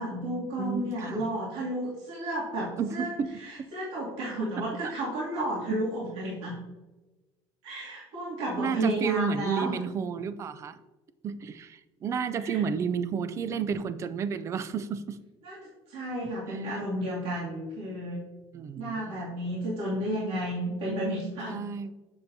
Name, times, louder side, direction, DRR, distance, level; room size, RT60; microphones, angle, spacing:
voice 1, 0.0-3.1 3.4-6.5 7.6-9.8 12.4-12.6 15.4-18.2 18.8-21.6, right 1 dB, 60° right, -7 dB, 2.3 m, -32 dB
voice 2, 0.6-1.3 2.8-3.4 4.8-4.9 5.7-5.8 8.6-10.8 11.2-15.2 16.5-16.6 18.5-19.3 21.5-21.9, right 6 dB, 25° right, 13 dB, 0.3 m, -31 dB
7.1 x 6.6 x 2.7 m, 1.1 s
cardioid pair, 165°, 11 cm